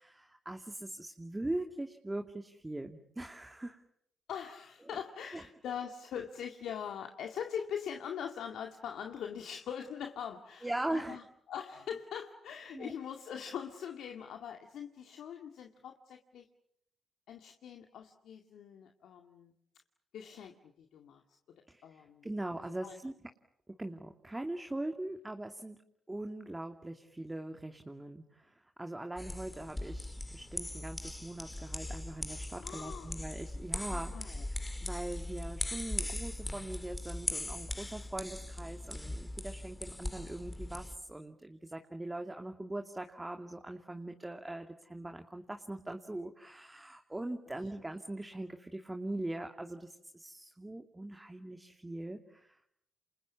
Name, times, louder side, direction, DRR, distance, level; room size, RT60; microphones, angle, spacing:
voice 1, 0.0-3.8 5.3-5.4 10.6-11.2 12.7-12.9 21.7-21.8 22.2-23.1 23.7-25.8 26.1-34.3 34.6-52.5, right 1 dB, 15° right, 4 dB, 2.5 m, -41 dB
voice 2, 4.3-11.2 11.5-16.5 17.3-19.5 20.1-21.2 21.8-22.3 22.8-23.0 32.6-33.1 33.9-34.5, left 8 dB, 70° left, 3 dB, 2.1 m, -42 dB
sound 1, 29.2-41.0, left 1 dB, 15° left, 3.2 m, -40 dB
29.5 x 27.5 x 7.3 m, 0.73 s
supercardioid pair, 55°, 0 cm